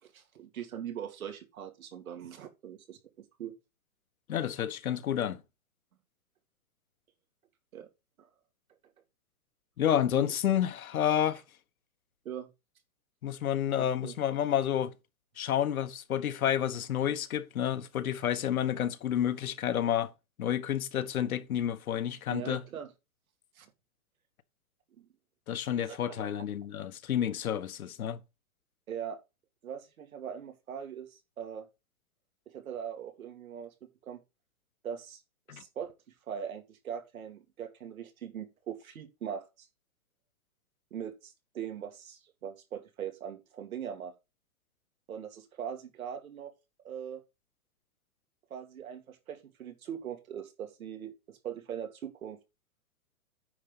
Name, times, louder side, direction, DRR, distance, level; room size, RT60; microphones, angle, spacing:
voice 1, 0.0-3.6 7.7-7.9 8.2-8.3 10.2-10.3 12.2-12.5 13.8-14.1 22.3-22.9 23.6-23.7 25.0-25.1 25.8-26.4 28.9-29.2 29.6-31.7 32.5-34.2 34.8-35.2 35.5-39.7 40.9-44.1 45.1-46.5 46.8-47.2 48.5-52.4, right 8 dB, 80° right, 2.5 m, -41 dB
voice 2, 4.3-5.4 9.8-11.4 13.2-14.9 15.4-20.1 20.4-22.6 25.5-28.2 35.5-35.6, left 10 dB, 90° left, 1.3 m, -30 dB
9.7 x 3.9 x 7.3 m
hypercardioid pair, 175°, 41 cm